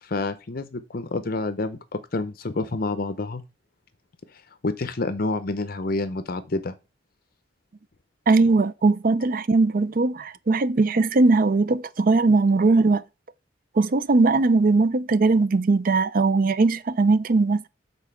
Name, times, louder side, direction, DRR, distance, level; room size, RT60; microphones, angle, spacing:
voice 1, 0.0-1.8 2.1-3.4 4.6-6.7, left 2 dB, 55° left, 0.7 m, -28 dB
voice 2, 8.3-13.0 13.8-17.7, right 3 dB, 50° right, 0.5 m, -20 dB
7.1 x 4.0 x 5.6 m
head